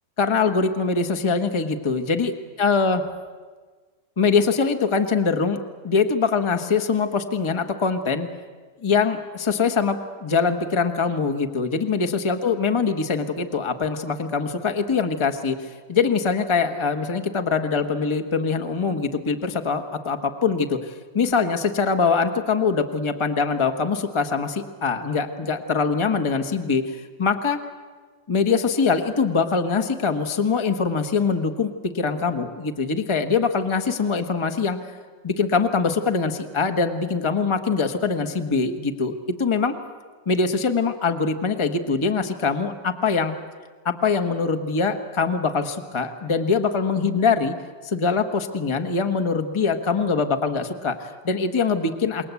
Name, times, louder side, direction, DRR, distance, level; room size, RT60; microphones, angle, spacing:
voice 1, 0.2-3.0 4.2-8.3 8.8-27.6 28.3-34.8 35.2-39.7 40.3-43.3 43.8-47.5 47.8-52.3, left 5 dB, 20° left, 5 dB, 1.2 m, -23 dB
28.0 x 21.5 x 8.4 m, 1.5 s
omnidirectional pair, 2.0 m